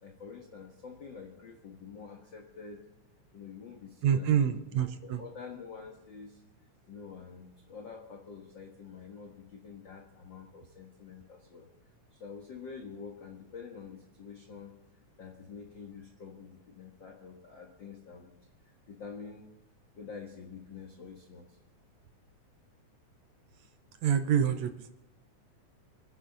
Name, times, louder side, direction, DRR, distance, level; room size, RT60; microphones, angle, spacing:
voice 1, 0.0-2.9 3.3-6.4 6.9-11.7 12.1-14.8 15.2-18.3 18.6-19.5 20.0-21.6, left 5 dB, 45° left, 1 dB, 1.7 m, -47 dB
voice 2, 4.0-5.2 24.0-24.9, right 8 dB, 70° right, 9 dB, 1.9 m, -27 dB
28.0 x 10.0 x 4.0 m, 0.90 s
omnidirectional pair, 3.6 m